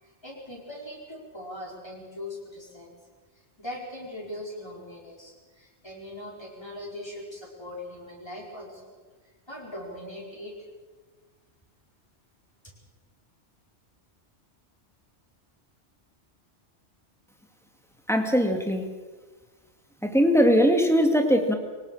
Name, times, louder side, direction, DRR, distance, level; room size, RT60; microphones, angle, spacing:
voice 1, 0.0-2.9 3.6-8.8 9.5-10.5, left 1 dB, 20° left, -3 dB, 5.0 m, -40 dB
voice 2, 18.1-18.9 20.0-21.5, equal, ahead, 4 dB, 2.1 m, -21 dB
23.5 x 18.5 x 6.6 m, 1.4 s
omnidirectional pair, 1.2 m